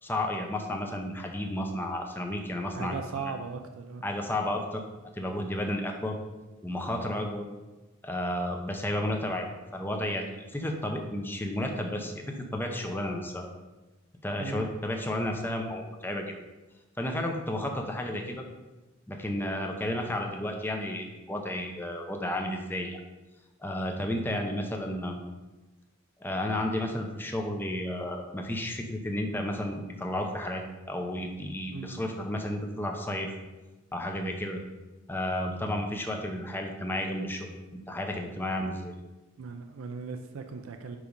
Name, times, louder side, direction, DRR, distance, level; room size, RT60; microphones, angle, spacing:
voice 1, 0.0-3.3 4.0-4.8 5.1-6.2 6.6-7.4 8.0-9.5 9.7-13.5 14.2-16.3 17.0-18.4 19.1-23.0 23.6-25.2 26.2-33.3 33.9-34.6 35.1-38.9, left 1 dB, 10° left, 2 dB, 0.6 m, -32 dB
voice 2, 2.7-4.0 14.4-14.7 31.7-32.0 39.4-41.0, right 5 dB, 80° right, 5 dB, 0.5 m, -38 dB
5.1 x 4.9 x 5.2 m, 1.1 s
head